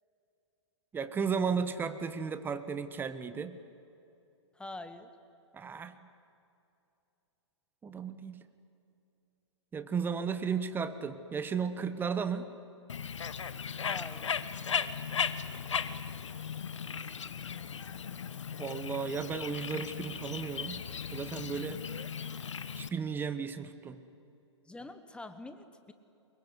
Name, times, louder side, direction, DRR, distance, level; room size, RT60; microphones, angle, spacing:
voice 1, 0.9-3.6 5.5-5.9 7.8-8.5 9.7-12.5 18.6-20.8 21.1-21.8 22.8-24.0, right 6 dB, 15° right, 11 dB, 1.3 m, -34 dB
voice 2, 4.5-5.1 13.8-14.4 24.7-25.9, left 2 dB, 5° left, 10 dB, 1.3 m, -45 dB
Bird, 12.9-22.9, left 6 dB, 80° left, 1.3 m, -37 dB
24.5 x 22.5 x 9.8 m, 2.7 s
hypercardioid pair, 120°, 15 cm